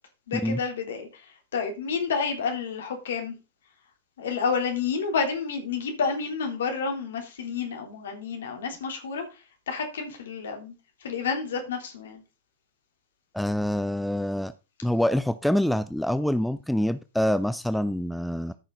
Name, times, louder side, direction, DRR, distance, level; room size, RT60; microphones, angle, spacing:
voice 1, 0.3-1.1 1.5-3.3 4.2-9.2 9.7-10.7 11.0-12.2, left 5 dB, 65° left, 3.2 m, -29 dB
voice 2, 13.3-14.5 14.8-18.5, equal, ahead, 0.5 m, -26 dB
14.0 x 6.5 x 3.9 m
figure-of-eight pair, 90°, 0 cm